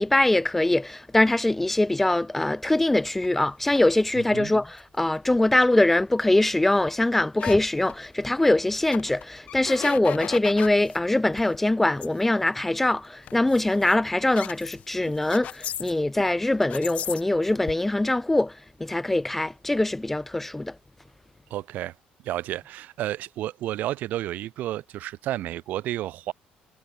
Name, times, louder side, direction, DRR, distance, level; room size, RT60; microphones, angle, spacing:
voice 1, 0.0-20.7, left 2 dB, 5° left, 1.0 m, -23 dB
sound 1, 3.0-3.9 4.8-4.9 5.3-5.5 6.0-6.1 6.3-6.4 6.8-7.6 7.9-8.1 8.5-8.6 8.9-11.0 11.3-11.6 12.0-12.1 12.6-12.9 13.2-16.3 16.6-17.7, left 10 dB, 45° left, 1.3 m, -37 dB
voice 2, 21.5-21.9 22.2-26.3, right 14 dB, 60° right, 3.3 m, -31 dB
cardioid pair, 170°, 3 cm